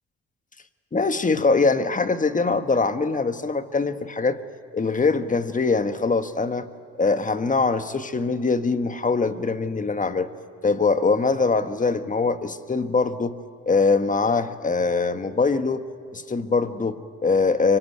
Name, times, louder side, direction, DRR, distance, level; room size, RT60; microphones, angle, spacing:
voice 1, 0.9-4.4 4.7-6.7 7.0-10.3 10.6-13.3 13.7-15.8 16.1-17.8, left 4 dB, 25° left, 9 dB, 1.4 m, -22 dB
24.5 x 24.0 x 9.4 m, 2.5 s
cardioid pair, 90°, 30 cm